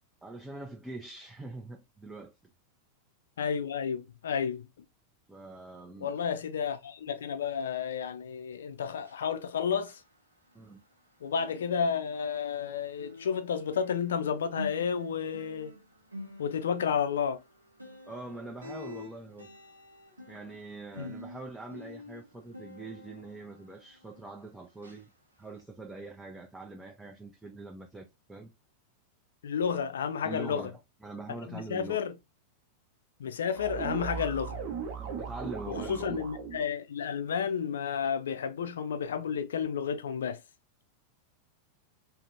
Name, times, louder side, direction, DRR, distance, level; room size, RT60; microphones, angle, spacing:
voice 1, 0.2-2.3 5.3-6.2 10.5-10.8 18.1-19.5 20.3-25.1 25.4-28.5 30.2-32.0 35.0-36.2, right 2 dB, 5° right, 0.4 m, -43 dB
voice 2, 3.4-4.7 6.0-10.0 11.2-15.7 16.4-17.4 21.0-21.1 29.4-30.7 31.5-32.2 33.2-34.6 35.7-40.4, left 7 dB, 65° left, 0.4 m, -31 dB
sound 1, 9.0-11.1 11.3-24.5 24.8-25.0 25.5-25.6, left 1 dB, 85° right, 0.5 m, -48 dB
sound 2, 33.5-36.7, right 6 dB, 45° right, 0.7 m, -37 dB
2.5 x 2.0 x 2.7 m
figure-of-eight pair, 90°, 0 cm